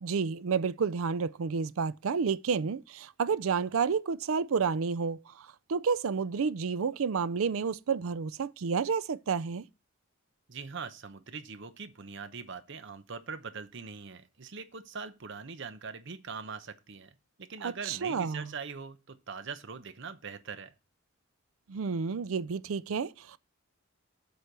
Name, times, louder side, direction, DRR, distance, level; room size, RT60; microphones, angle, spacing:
voice 1, 0.0-9.6 17.6-18.5 21.7-23.4, right 5 dB, 75° right, 0.5 m, -30 dB
voice 2, 10.5-20.7, right 5 dB, 60° right, 0.8 m, -42 dB
8.0 x 4.4 x 6.7 m
head